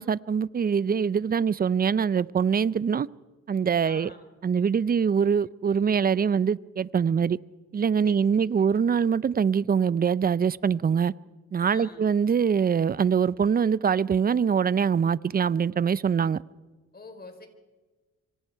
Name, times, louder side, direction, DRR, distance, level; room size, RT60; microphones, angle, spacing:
voice 1, 0.0-3.1 3.5-4.1 4.4-7.4 7.7-11.1 11.5-16.4, right 7 dB, 30° right, 0.6 m, -23 dB
voice 2, 3.8-4.2 8.0-8.7 11.7-12.1 16.9-17.5, left 3 dB, 30° left, 4.4 m, -47 dB
25.5 x 25.0 x 4.7 m
cardioid pair, 90°, 30 cm